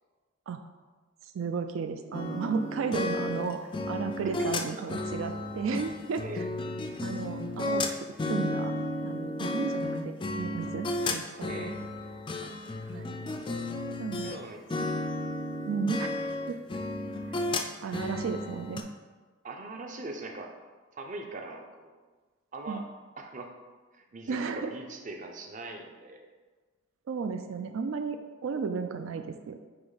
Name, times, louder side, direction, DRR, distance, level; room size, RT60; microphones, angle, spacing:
voice 1, 1.3-3.6 3.9-6.4 7.0-8.7 9.0-11.7 12.9-13.1 14.0-14.3 15.7-16.1 16.5-16.6 17.8-18.8 22.7-22.8 24.3-24.7 27.1-29.6, right 5 dB, 75° right, 7 dB, 0.4 m, -34 dB
sound 1, 2.1-14.4 14.7-18.8, left 2 dB, 25° left, 0.3 m, -33 dB
voice 2, 14.2-14.6 19.4-20.5 20.9-21.9 22.5-22.8 23.2-23.5 23.9-26.3, right 2 dB, 40° right, 3 dB, 0.6 m, -41 dB
8.6 x 2.9 x 4.0 m, 1.4 s
head